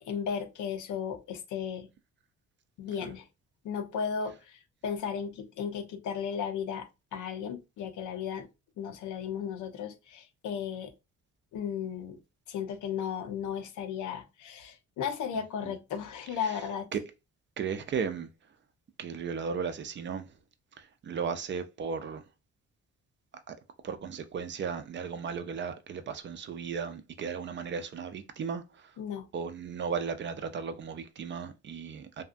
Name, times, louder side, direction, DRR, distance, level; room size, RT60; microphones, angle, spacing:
voice 1, 0.0-1.9 2.8-3.3 3.6-8.5 8.8-10.9 11.5-12.2 12.5-16.9 29.0-29.3, left 7 dB, 75° left, 0.6 m, -35 dB
voice 2, 17.6-18.3 19.0-20.3 20.8-22.2 23.5-23.6 23.8-28.9 29.3-32.2, right 6 dB, 40° right, 0.4 m, -35 dB
2.6 x 2.2 x 2.5 m
cardioid pair, 90°, 30 cm